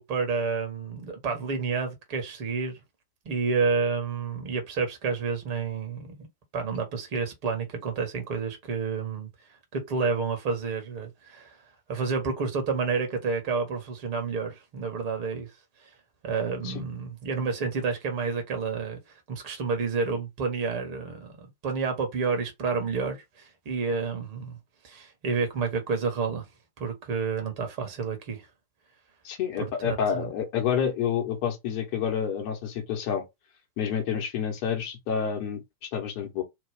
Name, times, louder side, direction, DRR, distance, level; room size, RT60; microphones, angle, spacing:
voice 1, 0.0-2.8 3.2-6.3 6.5-9.3 9.7-11.6 11.9-15.5 16.2-24.6 24.8-26.4 26.8-28.5 29.6-29.7 30.1-30.3, right 4 dB, 45° right, 1.3 m, -29 dB
voice 2, 29.2-33.2 33.8-36.4, left 7 dB, 45° left, 1.0 m, -29 dB
3.0 x 2.4 x 3.4 m
figure-of-eight pair, 90°, 0 cm